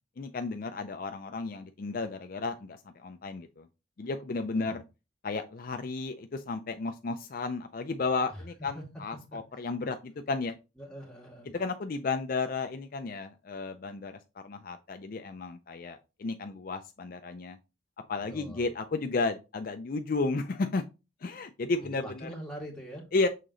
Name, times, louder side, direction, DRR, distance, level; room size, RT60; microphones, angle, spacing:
voice 1, 0.2-3.7 4.0-4.8 5.2-10.6 11.5-14.2 14.4-17.6 18.1-20.8 21.2-22.3 23.1-23.3, left 3 dB, 45° left, 7 dB, 0.4 m, -33 dB
voice 2, 10.8-11.5 18.3-18.7 21.9-23.0, equal, 5° left, -3 dB, 2.2 m, -43 dB
6.6 x 3.8 x 3.7 m, 0.28 s
head